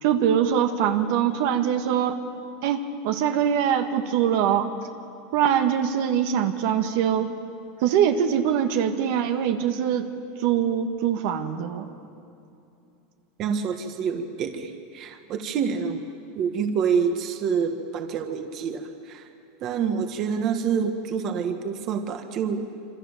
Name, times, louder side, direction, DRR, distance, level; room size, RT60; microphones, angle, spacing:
voice 1, 0.0-2.2 2.6-4.7 5.3-7.3 7.8-10.1 10.4-11.9, right 9 dB, 60° right, 5 dB, 1.8 m, -23 dB
voice 2, 13.4-16.0 16.4-19.3 19.6-22.7, right 6 dB, 35° right, 5 dB, 1.7 m, -27 dB
26.5 x 26.0 x 7.4 m, 2.7 s
supercardioid pair, 160°, 0 cm